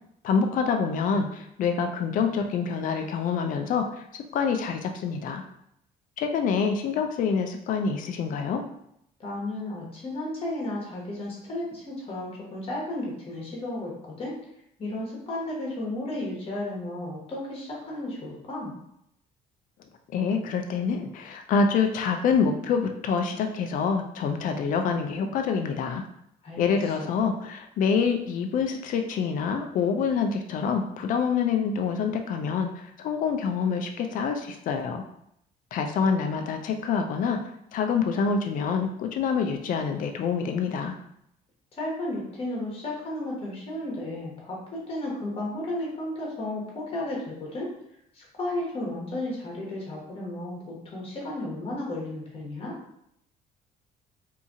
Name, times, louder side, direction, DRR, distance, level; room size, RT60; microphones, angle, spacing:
voice 1, 0.2-3.9 4.3-5.4 6.2-8.6 20.1-26.0 26.6-35.0 35.7-37.4 37.7-41.0, left 5 dB, 50° left, 5 dB, 0.4 m, -26 dB
voice 2, 9.2-13.9 14.2-14.3 14.8-18.7 26.4-26.6 27.0-27.1 41.8-47.7 48.1-52.7, left 1 dB, 35° left, -3 dB, 1.1 m, -33 dB
2.7 x 2.4 x 2.6 m, 0.76 s
cardioid pair, 110°, 17 cm